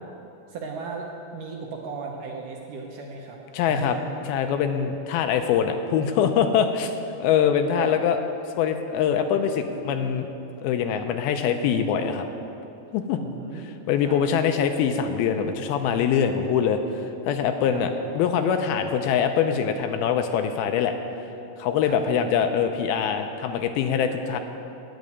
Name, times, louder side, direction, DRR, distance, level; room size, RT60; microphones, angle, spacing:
voice 1, 0.5-3.4 3.7-4.1 7.8-7.9 9.4-9.5 13.1-13.8 14.0-14.4 17.7-18.0 21.8-22.3, right 4 dB, 75° right, 0 dB, 2.1 m, -36 dB
voice 2, 3.5-4.0 4.3-6.9 7.2-8.2 8.6-10.3 10.6-12.3 12.9-13.2 13.9-21.0 21.6-24.4, left 7 dB, 80° left, 7 dB, 2.3 m, -23 dB
10.5 x 7.6 x 9.5 m, 2.8 s
omnidirectional pair, 4.6 m